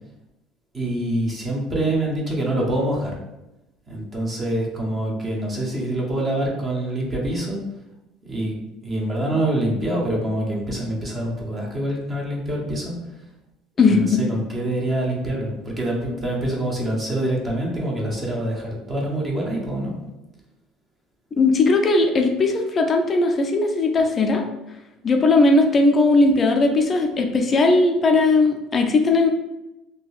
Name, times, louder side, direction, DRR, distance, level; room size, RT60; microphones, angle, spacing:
voice 1, 0.7-3.2 3.9-7.6 8.2-8.5 8.8-12.9 13.8-20.0, right 1 dB, 20° right, -2 dB, 0.7 m, -25 dB
voice 2, 13.8-14.2 21.4-24.4 25.0-29.3, left 3 dB, 25° left, 4 dB, 0.4 m, -18 dB
3.6 x 2.7 x 2.3 m, 0.96 s
cardioid pair, 155°, 0 cm